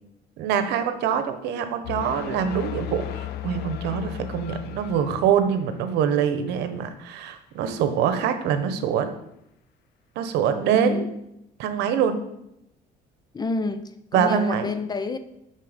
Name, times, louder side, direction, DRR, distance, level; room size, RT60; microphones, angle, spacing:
voice 1, 0.4-9.1 10.2-11.0 11.6-12.2 14.1-14.7, right 8 dB, 90° right, 9 dB, 1.0 m, -24 dB
sound 1, 1.8-5.6, left 10 dB, 75° left, 0.7 m, -35 dB
voice 2, 10.7-11.1 13.3-15.2, left 3 dB, 25° left, 11 dB, 0.8 m, -28 dB
12.5 x 4.6 x 5.1 m, 0.81 s
cardioid pair, 110°, 17 cm